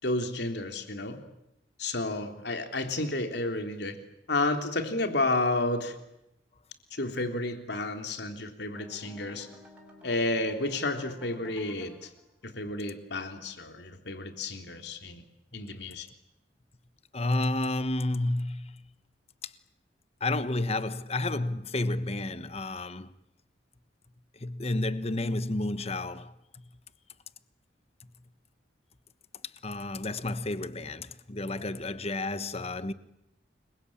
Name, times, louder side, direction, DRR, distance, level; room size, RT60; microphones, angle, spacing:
voice 1, 0.0-1.2 1.8-4.0 4.3-6.0 6.9-9.5 10.0-12.1 12.6-15.2 15.5-16.1, left 2 dB, 60° left, 3.4 m, -31 dB
sound 1, 8.7-12.2, equal, 5° right, 7.3 m, -52 dB
voice 2, 17.1-18.8 20.2-23.1 24.4-26.3 29.6-32.9, left 2 dB, 35° left, 1.2 m, -31 dB
29.0 x 23.0 x 8.8 m
head